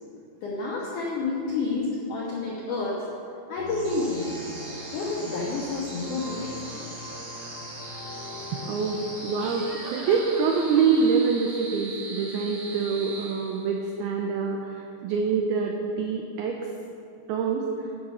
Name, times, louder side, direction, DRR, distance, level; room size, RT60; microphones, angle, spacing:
voice 1, 0.4-3.1 3.5-4.3 4.9-7.1, left 3 dB, 80° left, -3 dB, 1.8 m, -30 dB
sound 1, 3.6-9.5, left 1 dB, 60° left, 3.9 m, -41 dB
sound 2, 3.6-13.9, right 2 dB, 50° right, 4.9 m, -41 dB
sound 3, 6.3-6.5 9.4-11.3, left 1 dB, 15° left, 2.2 m, -42 dB
voice 2, 8.5-16.7 17.3-17.6, right 5 dB, 90° right, 1 dB, 2.2 m, -25 dB
13.0 x 10.5 x 5.6 m, 2.7 s
omnidirectional pair, 5.6 m